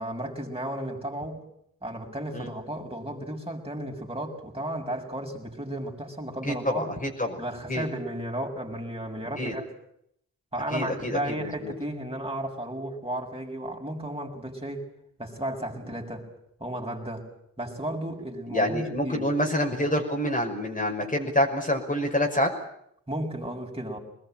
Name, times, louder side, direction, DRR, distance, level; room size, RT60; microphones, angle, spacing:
voice 1, 0.0-1.4 1.8-6.8 7.4-9.7 10.5-14.9 15.2-16.3 16.6-17.3 17.6-19.2 23.1-24.0, right 1 dB, 15° right, 1 dB, 6.7 m, -34 dB
voice 2, 6.5-7.4 7.7-7.9 9.4-9.6 10.7-11.7 18.5-22.5, left 1 dB, 20° left, 1 dB, 5.8 m, -27 dB
23.5 x 20.5 x 9.1 m, 0.75 s
hypercardioid pair, 45°, 39 cm